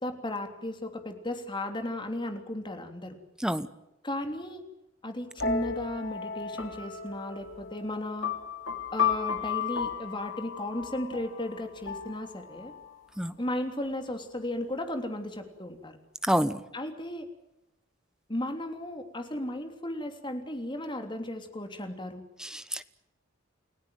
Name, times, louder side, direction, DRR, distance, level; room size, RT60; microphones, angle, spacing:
voice 1, 0.0-3.2 4.0-4.6 5.0-8.3 8.9-12.7 13.4-16.0 16.7-17.3 18.3-22.2, left 1 dB, 25° left, 6 dB, 3.2 m, -35 dB
sound 1, 5.4-13.0, left 6 dB, 75° left, 3.4 m, -34 dB
voice 2, 16.3-16.6 22.4-22.8, equal, 5° right, 13 dB, 1.1 m, -27 dB
30.0 x 17.0 x 9.3 m, 0.90 s
head